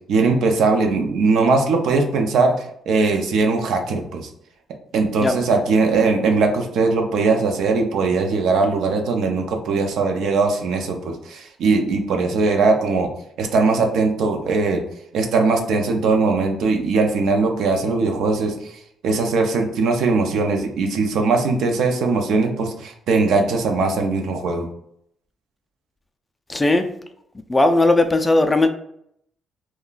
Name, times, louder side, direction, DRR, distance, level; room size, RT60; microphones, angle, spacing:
voice 1, 0.1-2.5 2.9-4.3 4.9-13.1 13.4-14.8 15.1-18.8 19.0-24.7, right 4 dB, 80° right, 3 dB, 0.5 m, -20 dB
voice 2, 26.5-26.9 27.5-28.7, left 2 dB, 20° left, 7 dB, 0.3 m, -17 dB
2.3 x 2.2 x 3.8 m, 0.72 s
cardioid pair, 90°, 0 cm